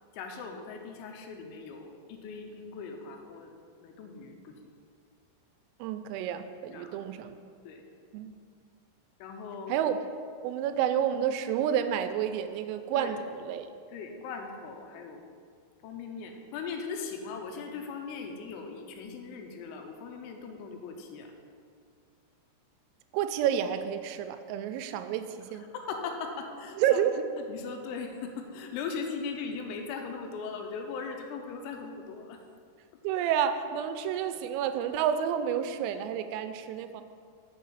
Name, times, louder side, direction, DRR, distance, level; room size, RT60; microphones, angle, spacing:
voice 1, 0.1-3.5 3.8-4.7 6.7-7.0 7.7-7.8 9.2-9.8 13.0-13.1 13.9-15.2 15.8-21.3 25.7-26.8 27.5-32.4, left 5 dB, 85° left, 4 dB, 3.5 m, -39 dB
voice 2, 5.8-7.4 8.1-8.3 9.7-10.0 10.4-13.7 23.1-25.7 26.8-27.2 33.0-37.0, right 9 dB, 85° right, 9 dB, 3.1 m, -29 dB
6.5 x 6.2 x 6.9 m, 2.2 s
omnidirectional pair, 5.8 m